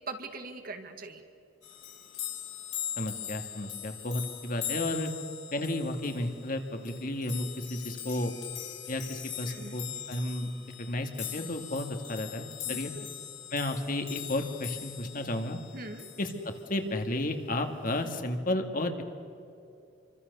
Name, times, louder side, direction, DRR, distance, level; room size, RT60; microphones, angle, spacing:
voice 1, 0.1-1.2 9.4-9.8 12.7-13.1 15.7-16.1, right 3 dB, 50° right, 6 dB, 2.2 m, -41 dB
sound 1, 1.6-16.6 17.9-18.1, left 11 dB, 75° left, 6.0 m, -41 dB
voice 2, 3.0-5.1 5.5-8.3 8.9-10.5 10.8-12.9 13.5-15.6 16.2-19.0, left 1 dB, 45° left, 5 dB, 2.1 m, -33 dB
28.5 x 24.5 x 6.9 m, 2.7 s
head